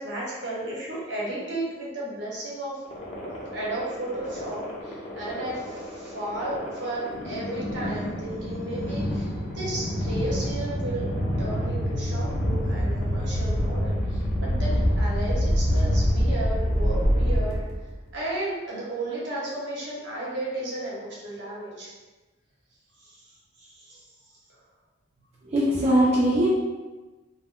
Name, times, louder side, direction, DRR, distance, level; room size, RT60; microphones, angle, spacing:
voice 1, 0.0-2.8 3.5-11.1 11.4-17.6 18.1-21.9 23.0-23.2 23.6-24.0, right 1 dB, 70° right, -5 dB, 0.9 m, -34 dB
sound 1, 2.9-18.0, equal, 35° left, 0.6 m, -27 dB
voice 2, 25.5-26.5, right 1 dB, 35° right, -6 dB, 0.4 m, -20 dB
2.2 x 2.0 x 3.6 m, 1.2 s
head